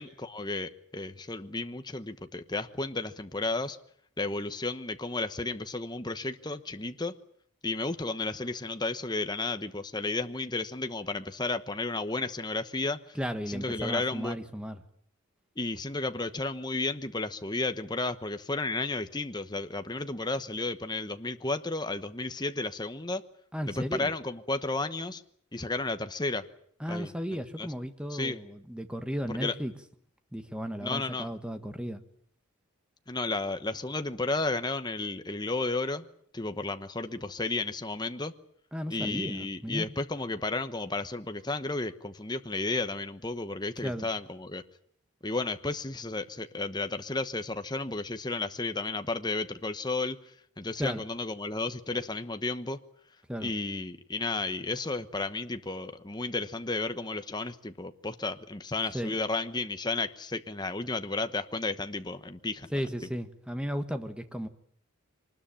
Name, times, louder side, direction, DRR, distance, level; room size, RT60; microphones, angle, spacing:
voice 1, 0.0-3.8 4.2-7.1 7.6-13.2 13.5-14.4 15.6-23.2 23.7-25.2 25.5-26.5 26.9-27.1 27.6-27.7 28.1-28.4 29.3-29.5 30.8-31.3 33.1-36.1 36.3-38.3 38.9-44.6 45.2-52.8 53.4-62.7, left 3 dB, 20° left, 9 dB, 1.1 m, -33 dB
voice 2, 13.1-14.8 23.5-24.1 26.8-29.7 30.3-32.0 38.7-39.9 43.8-44.1 50.8-51.0 53.3-53.5 58.9-59.1 62.7-64.5, equal, 5° right, 8 dB, 1.5 m, -34 dB
24.0 x 20.0 x 8.9 m, 0.63 s
head